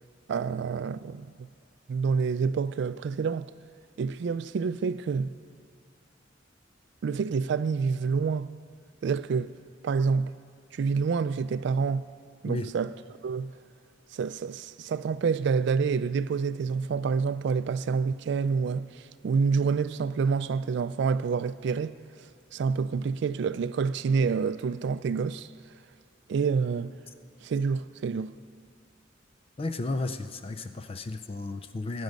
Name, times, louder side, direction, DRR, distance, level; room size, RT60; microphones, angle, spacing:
voice 1, 0.3-1.5 1.9-3.5 4.0-5.3 7.0-8.6 9.0-9.5 9.8-10.3 10.7-12.1 12.4-12.9 13.2-13.5 14.1-22.0 22.5-25.5 26.3-26.9 27.4-28.3, right 5 dB, 65° right, 0.3 m, -28 dB
voice 2, 29.6-32.0, left 2 dB, 30° left, 0.4 m, -33 dB
19.0 x 9.3 x 5.2 m
head